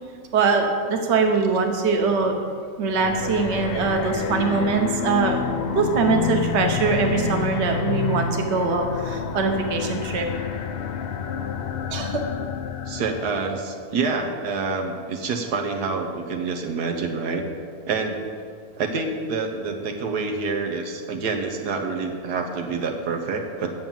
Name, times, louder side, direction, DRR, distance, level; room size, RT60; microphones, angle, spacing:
voice 1, 0.3-2.3 2.8-5.4 5.7-10.3 11.9-12.2, right 4 dB, 50° right, 3 dB, 1.3 m, -22 dB
sound 1, 2.9-13.6, left 7 dB, 70° left, 0.5 m, -29 dB
voice 2, 12.9-17.4 17.8-18.2 18.8-23.7, right 4 dB, 85° right, 3 dB, 1.6 m, -27 dB
9.7 x 7.5 x 7.2 m, 2.1 s
omnidirectional pair, 1.7 m